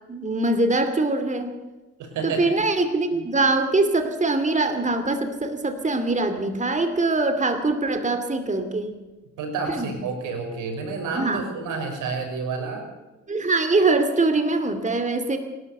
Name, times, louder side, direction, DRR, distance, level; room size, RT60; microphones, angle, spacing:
voice 1, 0.1-1.5 2.2-8.9 9.7-9.9 11.2-11.4 13.3-15.4, right 2 dB, 25° right, 8 dB, 2.6 m, -23 dB
voice 2, 2.0-2.4 3.1-3.2 9.4-12.9, right 4 dB, 90° right, 4 dB, 5.8 m, -30 dB
26.5 x 12.5 x 8.2 m, 1.1 s
cardioid pair, 90°, 30 cm